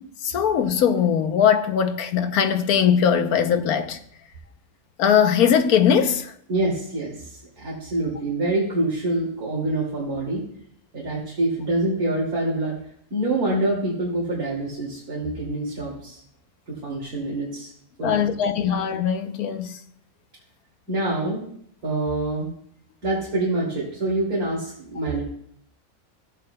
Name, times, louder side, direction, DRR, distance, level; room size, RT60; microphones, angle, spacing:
voice 1, 0.2-4.0 5.0-6.3 18.0-19.8, left 8 dB, 90° left, 1.3 m, -20 dB
voice 2, 6.5-10.4 10.9-12.7 13.1-16.2 16.7-17.7 18.0-18.1 18.6-18.7 20.9-21.4 21.8-22.5 23.0-25.2, right 2 dB, 85° right, 3.0 m, -26 dB
15.5 x 8.9 x 2.3 m
omnidirectional pair, 1.5 m